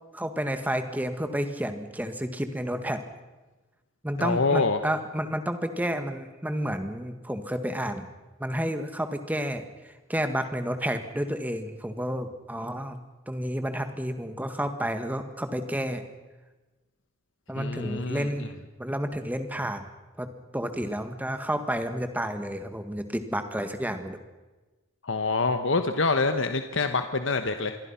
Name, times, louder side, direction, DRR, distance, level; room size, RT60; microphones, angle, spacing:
voice 1, 0.1-3.0 4.0-8.1 8.4-16.0 17.5-18.5 18.8-19.8 20.2-24.2, equal, 10° right, 8 dB, 1.8 m, -31 dB
voice 2, 4.2-4.8 17.6-18.5 25.0-27.8, left 3 dB, 65° left, 8 dB, 1.2 m, -26 dB
27.0 x 21.5 x 5.8 m, 1.2 s
head